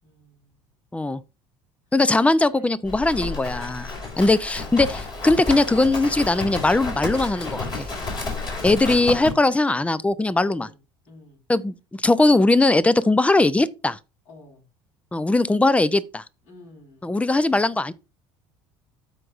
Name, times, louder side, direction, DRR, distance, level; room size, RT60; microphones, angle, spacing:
voice 1, 0.0-0.7 2.5-2.7 3.8-4.2 4.6-5.2 10.4-10.8 11.1-11.4 14.2-14.6 16.4-17.1, left 1 dB, 60° left, 4.7 m, -49 dB
voice 2, 1.9-4.9 5.2-7.9 8.6-10.7 11.5-14.0 15.1-16.2 17.0-17.9, left 2 dB, 10° left, 0.6 m, -20 dB
Livestock farm animals working animals, 2.9-9.3, left 3 dB, 35° left, 4.6 m, -31 dB
13.0 x 4.8 x 2.5 m
hypercardioid pair, 75°, 13 cm